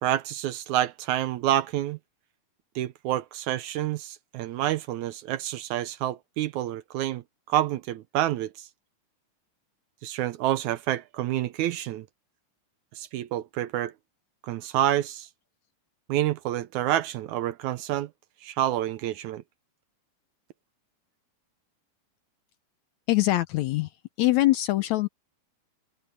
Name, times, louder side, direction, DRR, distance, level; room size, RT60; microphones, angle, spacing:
voice 1, 0.0-2.0 2.8-7.2 7.5-8.7 10.0-12.1 13.0-13.9 14.4-15.3 16.1-18.1 18.4-19.4, right 13 dB, 80° right, 1.9 m, -28 dB
voice 2, 23.1-23.9 24.2-25.1, left 17 dB, 75° left, 1.7 m, -23 dB
omnidirectional pair, 3.8 m